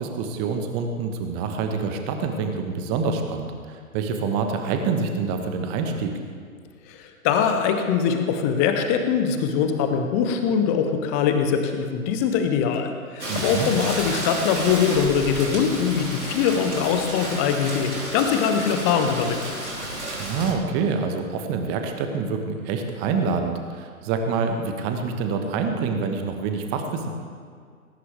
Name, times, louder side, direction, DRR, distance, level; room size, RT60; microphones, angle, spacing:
voice 1, 0.0-6.2 13.3-13.7 20.2-27.1, right 5 dB, 25° right, 5 dB, 1.3 m, -26 dB
voice 2, 6.9-19.4, left 7 dB, 10° left, 6 dB, 0.5 m, -22 dB
Rain, 13.2-20.5, right 1 dB, 85° right, 4.4 m, -31 dB
19.0 x 17.5 x 3.5 m, 2.1 s
figure-of-eight pair, 120°, 43 cm